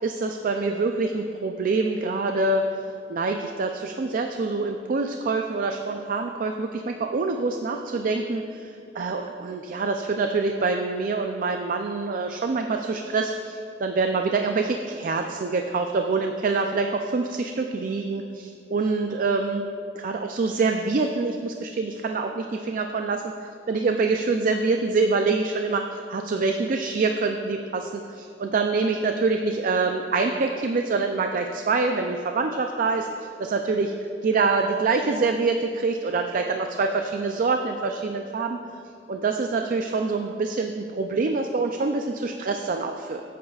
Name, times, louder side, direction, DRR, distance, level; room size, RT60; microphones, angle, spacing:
voice 1, 0.0-2.6 3.1-19.7 20.0-33.9 34.2-38.6 39.1-43.2, right 3 dB, 50° right, 5 dB, 0.4 m, -25 dB
15.0 x 8.4 x 2.4 m, 2.5 s
head